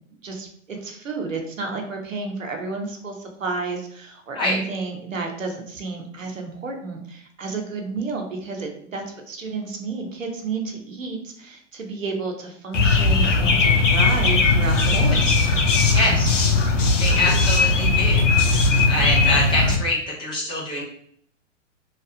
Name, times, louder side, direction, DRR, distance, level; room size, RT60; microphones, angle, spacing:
voice 1, 0.1-15.3 16.0-16.5 16.8-17.4, right 4 dB, 90° right, 3 dB, 0.8 m, -31 dB
sound 1, 12.7-19.8, left 3 dB, 75° left, 0.7 m, -18 dB
voice 2, 15.9-16.4 17.0-18.3 18.9-20.8, left 2 dB, 10° left, -4 dB, 0.4 m, -24 dB
2.8 x 2.3 x 2.6 m, 0.66 s
figure-of-eight pair, 110°, 38 cm